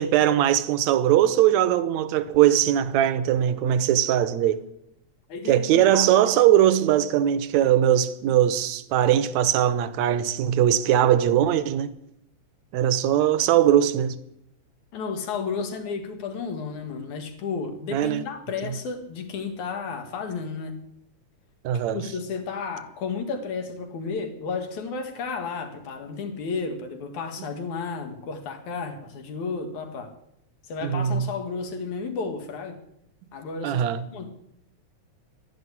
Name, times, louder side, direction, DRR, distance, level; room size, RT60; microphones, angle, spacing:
voice 1, 0.0-4.6 5.5-11.9 12.7-14.2 17.9-18.2 18.6-18.8 21.6-22.0 30.8-31.3 33.6-34.1, right 11 dB, 75° right, 2.1 m, -20 dB
voice 2, 5.3-6.3 14.9-20.8 21.9-30.1 30.6-32.8 33.3-33.8 34.1-34.3, left 5 dB, 80° left, 3.4 m, -32 dB
12.0 x 11.0 x 9.9 m
omnidirectional pair, 3.4 m